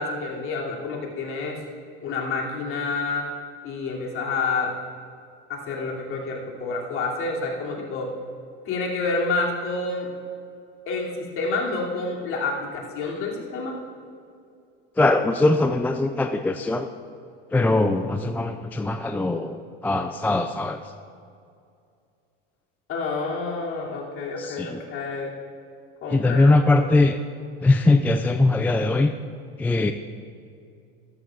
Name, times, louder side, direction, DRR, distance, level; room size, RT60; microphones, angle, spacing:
voice 1, 0.0-1.6 2.0-3.3 3.6-4.7 5.5-8.1 8.6-10.1 10.9-13.8 22.9-25.3 26.0-26.8, left 3 dB, 45° left, -2 dB, 2.8 m, -28 dB
voice 2, 15.0-16.9 17.5-20.8 24.4-24.8 26.1-27.2 27.6-29.1 29.6-29.9, left 2 dB, 5° left, 7 dB, 0.3 m, -21 dB
14.0 x 13.0 x 2.5 m, 2.4 s
hypercardioid pair, 95°, 30 cm